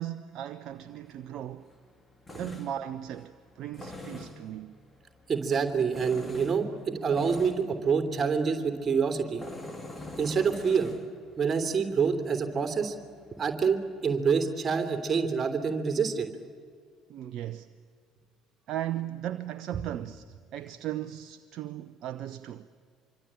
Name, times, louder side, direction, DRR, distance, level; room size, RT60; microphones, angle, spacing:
voice 1, 0.0-1.7 2.3-4.8 17.1-17.7 18.7-22.7, right 12 dB, 50° right, 0.8 m, -37 dB
Tools, 0.7-14.8, left 2 dB, 15° left, 3.5 m, -47 dB
voice 2, 5.3-9.4 10.2-10.9 11.4-12.9 13.4-16.3, right 5 dB, 30° right, 3.2 m, -27 dB
26.0 x 24.5 x 8.9 m
figure-of-eight pair, 55°, 0 cm